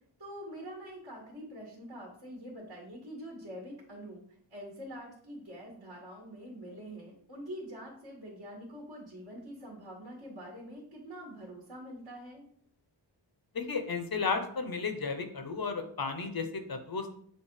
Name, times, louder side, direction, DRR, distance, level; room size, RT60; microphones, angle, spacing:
voice 1, 0.2-4.2 4.5-12.5, equal, 55° right, -4 dB, 2.2 m, -45 dB
voice 2, 13.5-17.1, left 4 dB, 50° left, 7 dB, 0.9 m, -33 dB
7.3 x 2.6 x 4.8 m, 0.63 s
wide cardioid pair, 65°, 46 cm